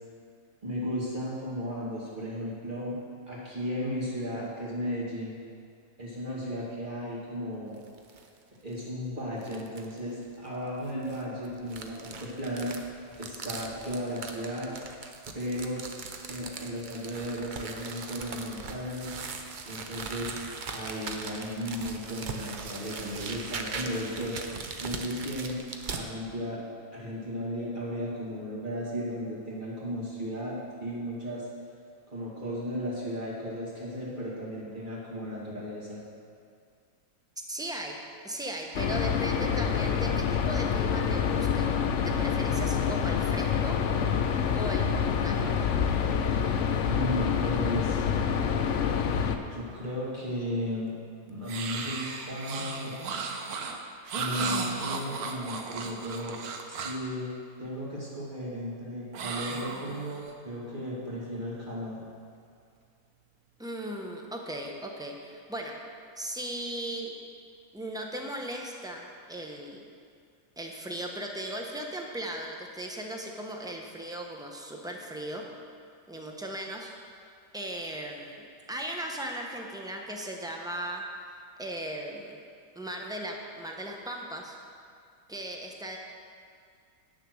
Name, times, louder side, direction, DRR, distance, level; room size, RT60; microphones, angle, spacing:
voice 1, 0.6-3.0 3.3-5.4 6.0-7.8 8.6-12.8 13.2-14.8 15.3-15.8 16.3-19.1 19.6-20.4 20.7-24.4 24.8-25.6 25.9-26.6 26.9-31.5 32.1-36.0 46.9-48.0 49.5-50.9 51.3-53.0 54.1-56.4 56.7-57.3 57.6-62.0, equal, 30° right, -7 dB, 2.5 m, -35 dB
sound 1, 7.7-8.3 8.7-8.8 9.4-10.0 10.8-26.0, right 4 dB, 50° right, 0.6 m, -40 dB
voice 2, 37.5-38.0 38.2-41.7 42.0-43.8 44.5-45.6 63.6-65.8 66.2-67.1 67.7-69.8 70.6-75.4 76.1-76.9 77.2-81.0 81.6-82.4 82.7-84.6 85.3-86.0, right 1 dB, 5° right, 0 dB, 0.6 m, -37 dB
sound 2, 38.7-49.4, left 7 dB, 65° left, 0.8 m, -27 dB
sound 3, 51.5-57.1 59.1-60.3, right 5 dB, 85° right, 1.3 m, -35 dB
9.2 x 6.6 x 6.3 m, 2.3 s
omnidirectional pair, 1.6 m